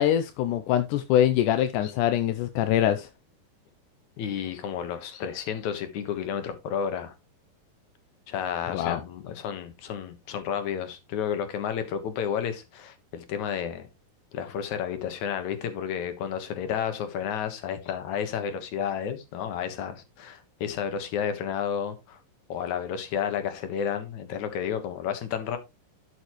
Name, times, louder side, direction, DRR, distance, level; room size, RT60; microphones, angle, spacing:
voice 1, 0.0-3.1 8.7-9.0, left 11 dB, 80° left, 2.0 m, -23 dB
voice 2, 4.2-7.1 8.3-13.9 14.3-22.2 22.5-25.6, left 8 dB, 60° left, 2.6 m, -31 dB
12.0 x 6.5 x 3.1 m
omnidirectional pair, 4.0 m